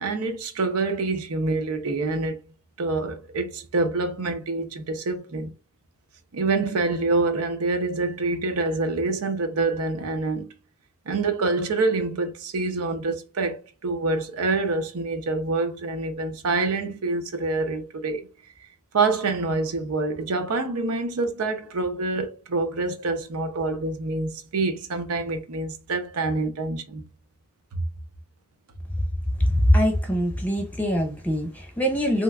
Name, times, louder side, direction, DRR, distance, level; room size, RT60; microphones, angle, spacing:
voice 1, 0.0-2.4 2.8-5.5 6.3-10.5 11.1-18.3 18.9-27.0 27.7-27.8, right 3 dB, 85° right, 0.6 m, -26 dB
voice 2, 29.4-32.2, equal, 5° left, 0.8 m, -22 dB
3.2 x 2.9 x 2.2 m
head